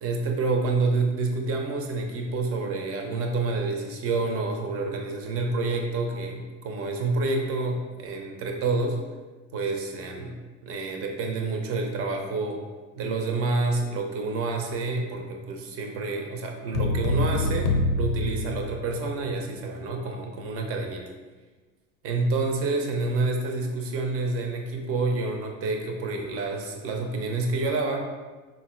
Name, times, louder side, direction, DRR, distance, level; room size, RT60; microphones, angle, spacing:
voice 1, 0.0-9.0 9.5-10.4 10.6-12.6 13.0-21.0 22.0-28.1, right 3 dB, 30° right, 3 dB, 0.5 m, -28 dB
sound 1, 16.7-19.3, left 2 dB, 60° left, 0.6 m, -26 dB
3.8 x 2.0 x 2.4 m, 1.3 s
hypercardioid pair, 80°, 46 cm